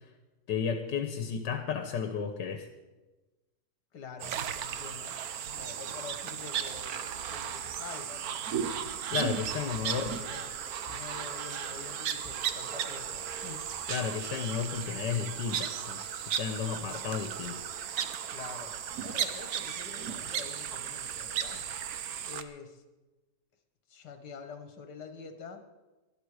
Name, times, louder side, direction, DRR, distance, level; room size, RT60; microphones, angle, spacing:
voice 1, 0.5-2.7 9.1-10.0 13.9-17.6, left 7 dB, 85° left, 7 dB, 1.7 m, -33 dB
voice 2, 3.9-8.5 9.9-13.8 18.3-18.8 19.0-21.7 22.2-22.8 23.9-25.6, left 5 dB, 70° left, 7 dB, 2.0 m, -46 dB
sound 1, 4.2-22.4, right 8 dB, 65° right, 1.2 m, -35 dB
sound 2, 9.4-14.8, left 1 dB, 25° left, 4.4 m, -53 dB
19.5 x 12.5 x 5.0 m, 1.2 s
omnidirectional pair, 1.8 m